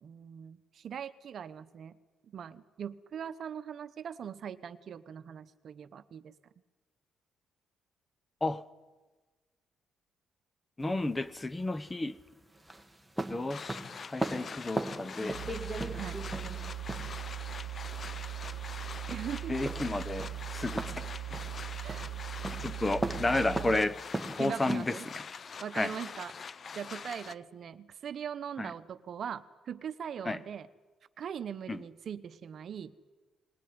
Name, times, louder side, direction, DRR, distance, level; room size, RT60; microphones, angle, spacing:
voice 1, 0.0-2.0 2.3-6.3 16.0-16.2 19.1-19.7 21.8-22.1 23.3-23.6 24.4-25.1 25.6-26.3 26.7-30.7 31.2-32.9, right 8 dB, 60° right, 12 dB, 0.9 m, -41 dB
voice 2, 10.8-12.2 13.3-13.8 14.0-15.4 19.5-20.9 22.6-24.0 24.3-25.0 25.7-25.9 28.6-28.7 30.2-30.4 31.7-31.8, left 2 dB, 20° left, 15 dB, 0.9 m, -32 dB
sound 1, 10.8-25.2, right 1 dB, 5° right, 1.8 m, -39 dB
sound 2, 13.5-27.3, left 6 dB, 45° left, 0.6 m, -44 dB
sound 3, 15.3-24.0, right 13 dB, 85° right, 1.0 m, -40 dB
20.5 x 18.0 x 9.6 m, 1.3 s
cardioid pair, 90°, 0 cm